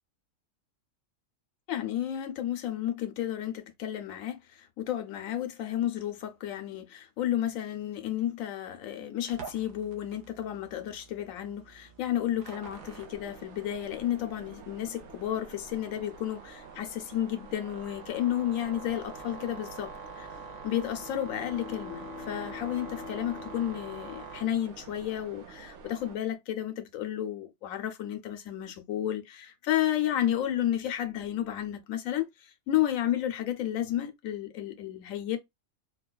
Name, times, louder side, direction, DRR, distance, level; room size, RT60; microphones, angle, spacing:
voice 1, 1.7-20.3 20.6-35.4, left 11 dB, 85° left, 1.1 m, -32 dB
sound 1, 9.3-24.4, right 5 dB, 85° right, 1.3 m, -47 dB
sound 2, 12.6-26.2, right 6 dB, 65° right, 1.0 m, -50 dB
Bowed string instrument, 20.6-25.2, left 6 dB, 60° left, 1.0 m, -46 dB
4.5 x 2.2 x 2.2 m
omnidirectional pair, 1.4 m